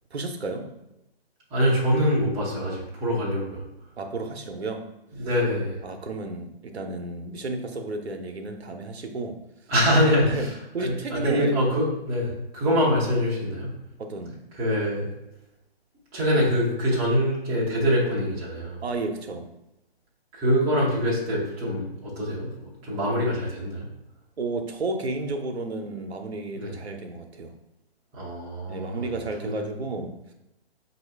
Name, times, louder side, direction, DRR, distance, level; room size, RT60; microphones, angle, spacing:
voice 1, 0.1-0.7 4.0-4.8 5.8-9.4 10.2-11.6 14.0-14.5 18.8-19.5 24.4-27.5 28.7-30.3, right 3 dB, 85° right, 4 dB, 0.7 m, -32 dB
voice 2, 1.5-3.6 5.2-5.8 9.7-10.5 10.8-13.8 14.5-15.1 16.1-18.8 20.3-23.9 26.5-26.8 28.1-29.0 29.4-29.7, equal, 10° right, -6 dB, 0.5 m, -24 dB
5.5 x 2.7 x 3.3 m, 0.91 s
figure-of-eight pair, 140°, 31 cm